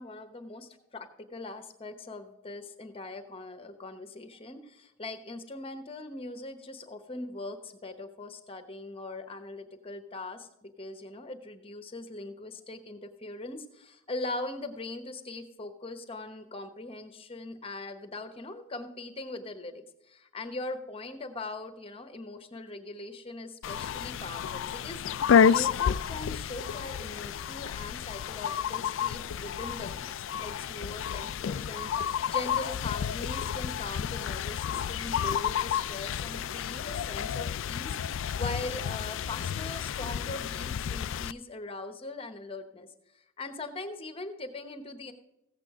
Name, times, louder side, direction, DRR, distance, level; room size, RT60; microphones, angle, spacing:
voice 1, 0.0-30.1 30.4-42.9 43.1-45.1, left 2 dB, 25° left, 8 dB, 1.0 m, -41 dB
sound 1, 23.6-41.3, left 7 dB, 65° left, 0.3 m, -30 dB
15.0 x 8.3 x 3.6 m, 0.91 s
head